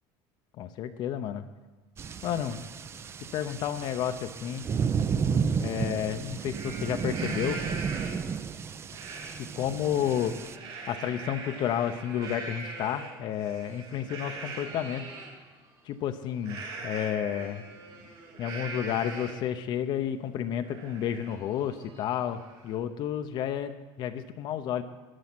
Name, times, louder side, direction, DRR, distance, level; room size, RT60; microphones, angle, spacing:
voice 1, 0.6-1.5 2.2-2.6 3.3-4.7 5.6-7.6 9.4-10.3 10.9-15.0 15.8-17.6 18.4-24.8, left 10 dB, 50° left, 8 dB, 0.7 m, -31 dB
sound 1, 2.0-10.6, right 6 dB, 25° right, 0.5 m, -32 dB
Livestock farm animals working animals, 5.7-5.8 6.3-8.3 8.9-9.3 9.7-15.3 16.4-19.5 19.9-20.0 20.4-22.7, right 3 dB, 60° right, 5.3 m, -41 dB
12.5 x 9.8 x 6.0 m, 1.2 s
cardioid pair, 135°, 10 cm